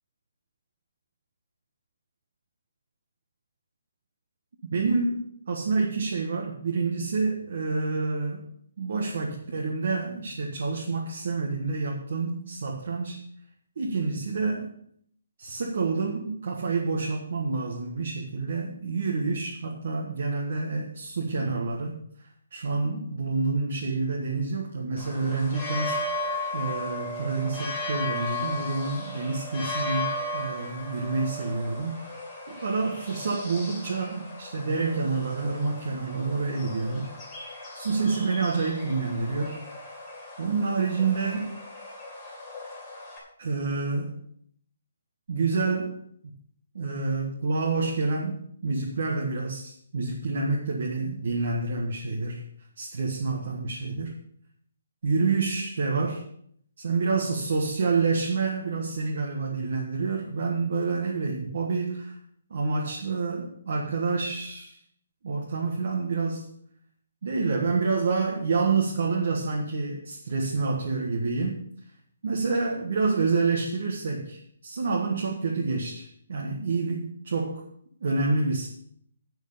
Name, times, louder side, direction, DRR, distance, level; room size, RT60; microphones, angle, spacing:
voice 1, 4.6-8.4 8.8-13.2 13.8-14.7 15.4-22.0 22.5-30.1 30.3-32.2 32.6-37.1 37.7-39.6 40.4-41.6 43.4-44.2 45.3-46.3 46.7-52.4 52.8-54.1 55.0-56.2 56.8-62.2 62.5-64.8 65.2-66.5 67.2-71.6 72.2-77.6 78.0-78.7, right 4 dB, 45° right, -1 dB, 1.5 m, -28 dB
sound 1, 25.0-43.2, left 1 dB, 10° left, 2.3 m, -36 dB
9.0 x 6.4 x 6.7 m, 0.66 s
hypercardioid pair, 180°, 0 cm